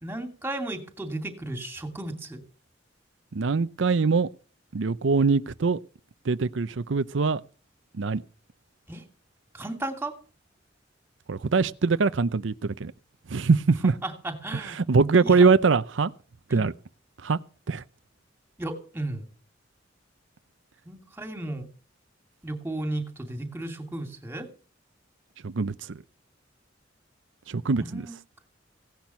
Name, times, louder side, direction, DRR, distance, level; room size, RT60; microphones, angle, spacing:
voice 1, 0.0-2.4 8.9-9.0 9.5-10.1 14.0-14.8 15.2-15.5 16.5-16.6 18.6-19.3 20.8-21.7 22.4-24.5 27.8-28.2, right 2 dB, 10° right, 2.6 m, -34 dB
voice 2, 3.3-4.3 4.7-5.8 6.3-7.4 7.9-8.2 11.3-12.9 13.3-13.9 14.5-16.1 16.5-16.7 17.2-17.4 17.7-17.8 25.4-26.0 27.5-28.1, right 4 dB, 80° right, 0.6 m, -23 dB
17.0 x 10.5 x 5.7 m
head